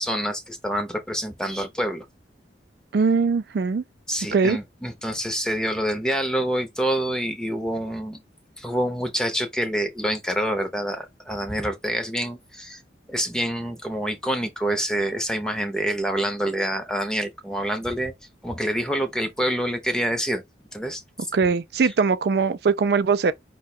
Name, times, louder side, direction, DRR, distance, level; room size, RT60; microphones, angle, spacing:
voice 1, 0.0-2.1 4.1-8.2 8.6-12.8 13.1-18.1 18.4-20.4 20.7-21.3 21.8-21.9, equal, 5° left, 0.7 m, -27 dB
voice 2, 2.9-3.8 4.3-4.6 21.3-23.3, right 5 dB, 60° right, 0.4 m, -21 dB
5.6 x 2.2 x 4.2 m
head